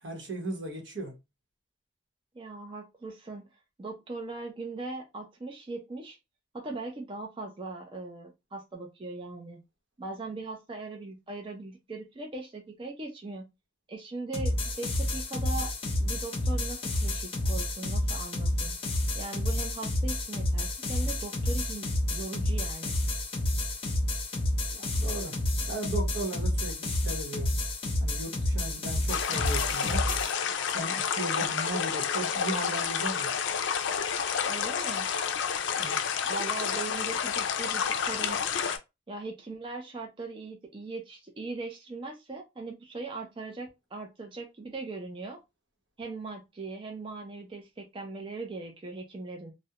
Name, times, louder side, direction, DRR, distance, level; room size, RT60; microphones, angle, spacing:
voice 1, 0.0-1.2 24.6-27.5 28.0-30.1 30.7-33.4 35.8-36.1, right 2 dB, 80° right, 0.9 m, -37 dB
voice 2, 2.3-3.5 3.8-6.2 6.5-9.6 10.0-13.4 13.9-15.7 16.0-18.8 19.1-22.9 34.5-35.1 36.3-38.4 39.1-45.4 46.0-49.5, right 3 dB, 30° right, 0.4 m, -39 dB
sound 1, 14.3-30.3, left 1 dB, 30° left, 0.6 m, -30 dB
sound 2, 29.1-38.8, left 7 dB, 90° left, 0.4 m, -30 dB
2.3 x 2.1 x 2.8 m
head